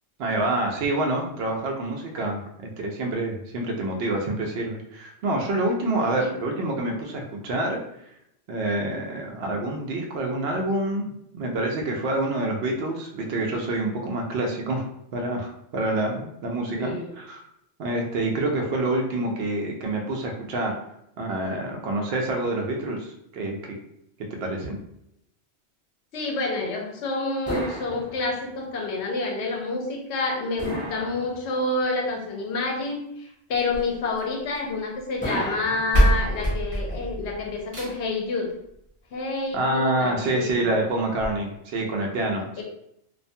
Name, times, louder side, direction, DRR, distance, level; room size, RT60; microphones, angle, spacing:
voice 1, 0.2-7.8 8.5-14.8 15.1-17.4 17.8-20.8 21.2-23.8 24.4-24.8 39.5-42.6, right 2 dB, 70° right, 1 dB, 0.8 m, -27 dB
voice 2, 6.0-6.3 16.8-17.1 26.1-38.5 39.1-40.7 42.6-42.7, left 3 dB, 75° left, 1 dB, 0.9 m, -28 dB
sound 1, 27.5-28.6 30.6-31.8 35.2-36.5, equal, 10° left, 0.5 m, -34 dB
sound 2, 33.5-34.8 35.6-35.7 35.9-38.2 39.5-39.6 40.1-40.2 40.5-40.6 41.2-41.3, equal, 30° right, 0.8 m, -24 dB
2.4 x 2.2 x 2.6 m, 0.77 s
omnidirectional pair, 1.2 m